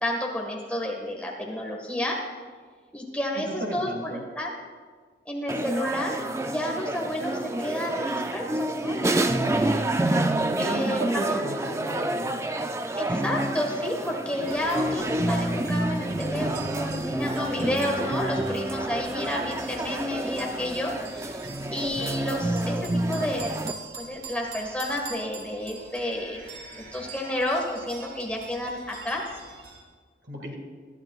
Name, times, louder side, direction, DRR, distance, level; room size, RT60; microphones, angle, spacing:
voice 1, 0.0-2.2 2.9-3.9 4.3-4.5 5.2-9.9 10.6-11.6 11.8-12.0 13.0-23.7 23.9-26.4 26.7-29.2, left 1 dB, 5° left, -1 dB, 1.6 m, -31 dB
voice 2, 3.3-4.2 10.4-12.4 30.2-30.6, right 1 dB, 85° right, 2 dB, 2.1 m, -33 dB
sound 1, 5.5-23.7, right 1 dB, 15° right, 0.4 m, -28 dB
sound 2, 14.4-29.8, right 4 dB, 70° right, 2.3 m, -44 dB
20.5 x 12.0 x 2.4 m, 1.5 s
head